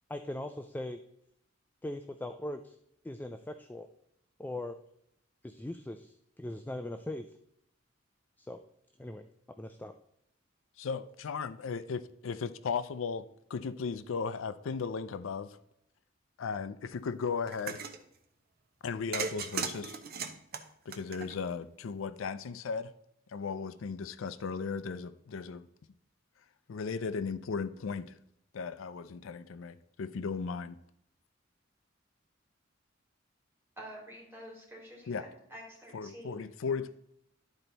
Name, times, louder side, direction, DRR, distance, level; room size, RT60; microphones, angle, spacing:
voice 1, 0.1-1.0 1.8-2.8 3.0-3.9 4.4-4.8 5.4-7.3 8.4-8.6 9.0-9.2 9.6-9.9, left 1 dB, 10° left, 0.3 m, -40 dB
voice 2, 10.8-15.6 16.4-17.8 18.8-20.0 20.9-22.9 23.3-25.7 26.7-28.2 28.5-30.8 35.1-35.2 35.9-36.9, left 5 dB, 85° left, 0.4 m, -36 dB
sound 1, 17.5-18.0 19.1-21.6, right 5 dB, 50° right, 0.8 m, -37 dB
voice 3, 33.8-36.9, equal, 10° right, 3.1 m, -49 dB
12.0 x 4.4 x 4.0 m
head